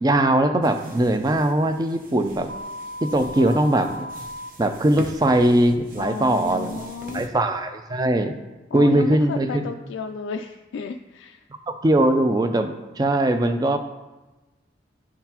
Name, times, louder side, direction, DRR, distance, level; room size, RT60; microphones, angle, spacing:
voice 1, 0.0-2.5 3.0-4.1 4.6-6.8 7.1-8.3 8.7-9.6 11.7-12.7 13.0-13.8, right 1 dB, 20° right, 7 dB, 0.3 m, -20 dB
sound 1, 0.6-7.3, right 1 dB, 45° right, 0.8 m, -42 dB
sound 2, 2.5-4.5, left 1 dB, 80° right, 0.7 m, -36 dB
voice 2, 6.0-7.3 8.7-11.4, left 5 dB, 80° left, 3 dB, 0.3 m, -33 dB
10.5 x 3.7 x 2.9 m, 1.1 s
head